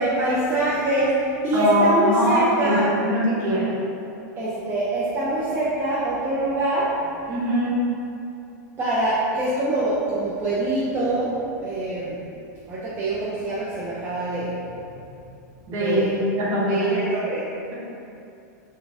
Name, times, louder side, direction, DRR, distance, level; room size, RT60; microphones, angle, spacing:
voice 1, 0.0-2.9 4.4-7.0 8.8-11.3 11.6-12.2 12.7-14.6 15.7-16.2 16.7-17.4, right 1 dB, 20° right, -9 dB, 0.5 m, -24 dB
voice 2, 1.5-3.7 7.3-7.8 15.7-17.0, right 1 dB, 40° right, -7 dB, 1.1 m, -22 dB
4.0 x 2.2 x 3.5 m, 2.6 s
supercardioid pair, 140°, 10 cm